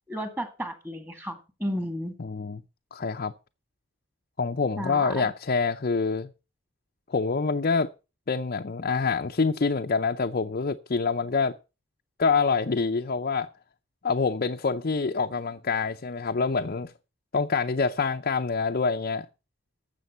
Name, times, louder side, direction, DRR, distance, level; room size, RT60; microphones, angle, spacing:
voice 1, 0.1-2.1 4.8-5.3, equal, 10° right, 2.0 m, -33 dB
voice 2, 2.2-2.6 2.9-3.3 4.4-6.3 7.1-7.9 8.3-11.6 12.2-13.5 14.0-16.9 17.3-19.3, left 4 dB, 45° left, 0.6 m, -26 dB
12.5 x 7.6 x 5.6 m
head